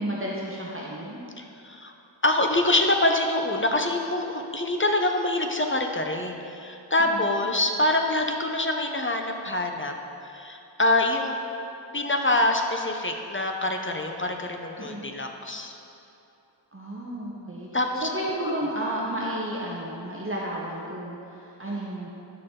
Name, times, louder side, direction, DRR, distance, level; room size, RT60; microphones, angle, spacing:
voice 1, 0.0-1.2 7.0-7.5 14.8-15.1 16.7-22.1, right 1 dB, 30° right, -5 dB, 0.9 m, -32 dB
voice 2, 1.4-1.9 2.2-9.9 10.3-11.4 11.9-15.8 17.7-18.1 18.4-18.6, left 1 dB, 25° left, 3 dB, 0.7 m, -25 dB
9.7 x 6.5 x 3.8 m, 2.7 s
wide cardioid pair, 45°, 45 cm